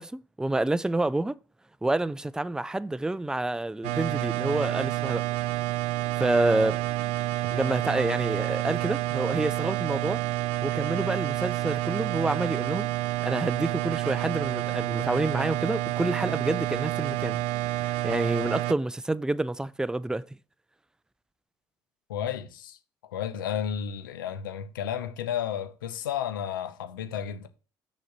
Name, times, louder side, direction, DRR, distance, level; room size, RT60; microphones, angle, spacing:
voice 1, 0.0-1.4 1.8-5.2 6.2-6.8 7.5-10.2 10.6-12.9 13.2-17.4 17.8-20.2, right 2 dB, 5° right, 0.4 m, -28 dB
sound 1, 3.8-18.7, right 17 dB, 70° right, 0.4 m, -29 dB
voice 2, 22.1-27.5, left 9 dB, 90° left, 0.8 m, -32 dB
6.5 x 4.2 x 5.5 m
hypercardioid pair, 60°, 11 cm